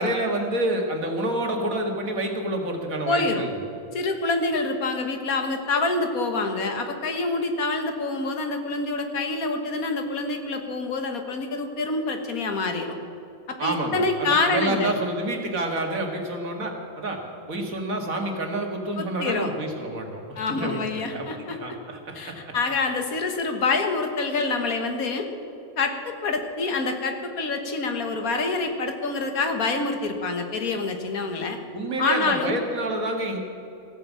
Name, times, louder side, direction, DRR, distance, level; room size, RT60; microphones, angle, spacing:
voice 1, 0.0-3.5 13.6-17.2 17.5-20.2 20.6-21.3 21.6-22.6 31.7-33.4, right 1 dB, 75° right, 2 dB, 2.3 m, -28 dB
voice 2, 3.1-3.4 3.9-13.0 13.5-14.9 19.0-19.5 20.4-21.8 22.1-25.3 25.8-31.6 32.0-32.6, left 3 dB, 90° left, 5 dB, 1.9 m, -26 dB
15.0 x 9.1 x 7.4 m, 2.9 s
omnidirectional pair, 1.5 m